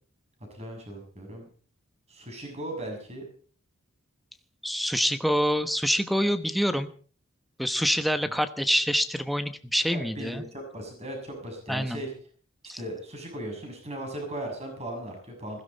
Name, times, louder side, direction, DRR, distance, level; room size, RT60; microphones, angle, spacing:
voice 1, 0.5-1.4 2.1-3.2 8.2-8.4 9.9-12.1 12.8-15.6, right 1 dB, 30° right, 3 dB, 6.6 m, -37 dB
voice 2, 4.6-6.9 7.6-10.5 11.7-12.0 12.7-12.8, equal, ahead, 9 dB, 1.0 m, -26 dB
21.0 x 16.0 x 4.1 m, 0.42 s
head